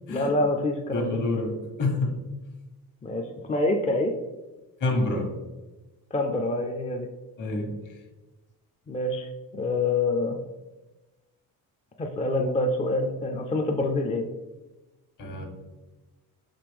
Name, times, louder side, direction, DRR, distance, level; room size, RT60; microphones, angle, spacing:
voice 1, 0.1-1.2 3.0-4.1 6.1-7.1 8.9-10.4 12.0-14.3, left 2 dB, 20° left, 3 dB, 0.4 m, -26 dB
voice 2, 0.9-2.1 4.8-5.4 7.4-7.7 15.2-15.4, left 2 dB, 55° left, 1 dB, 1.4 m, -27 dB
5.1 x 3.0 x 3.4 m, 1.1 s
cardioid pair, 90°, 37 cm